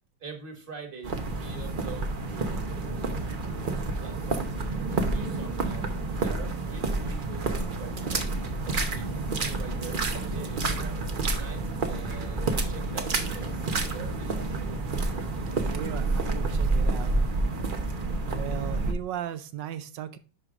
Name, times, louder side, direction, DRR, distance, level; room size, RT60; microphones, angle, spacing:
voice 1, 0.2-4.6 4.9-8.3 8.6-11.0 11.4-13.6 13.9-14.8, right 4 dB, 30° right, 4 dB, 1.4 m, -44 dB
sound 1, 1.0-18.9, right 3 dB, 60° right, 0.5 m, -29 dB
voice 2, 9.3-9.6 15.6-17.1 18.3-20.2, right 11 dB, 75° right, 12 dB, 1.2 m, -37 dB
11.0 x 4.7 x 2.4 m, 0.36 s
omnidirectional pair, 2.1 m